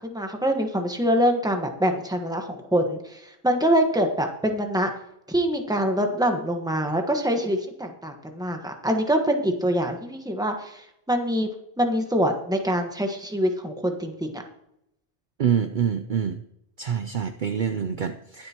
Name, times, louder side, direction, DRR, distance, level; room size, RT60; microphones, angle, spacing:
voice 1, 0.0-4.9 5.3-11.5 11.8-14.4, equal, 5° right, 4 dB, 1.2 m, -25 dB
voice 2, 15.4-16.4 16.8-18.5, right 8 dB, 55° right, 8 dB, 0.7 m, -26 dB
21.5 x 7.7 x 2.9 m, 0.80 s
omnidirectional pair, 1.2 m